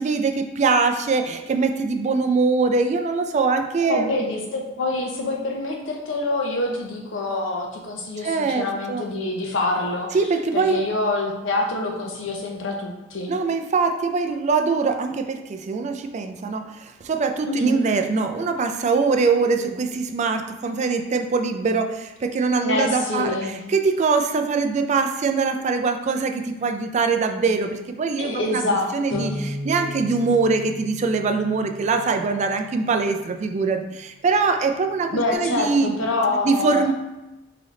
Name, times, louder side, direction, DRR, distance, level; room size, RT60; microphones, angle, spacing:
voice 1, 0.0-4.1 8.2-9.1 10.1-10.8 13.3-28.6 28.9-36.0 36.4-36.9, right 4 dB, 40° right, 6 dB, 0.3 m, -23 dB
voice 2, 3.9-10.2 10.5-13.3 17.5-17.9 19.6-19.7 22.6-23.6 28.2-29.4 35.1-36.8, left 2 dB, 85° left, 0 dB, 0.8 m, -26 dB
Bass guitar, 29.1-33.5 34.2-35.3, left 1 dB, 35° left, 1.0 m, -37 dB
3.8 x 3.4 x 3.7 m, 1.0 s
head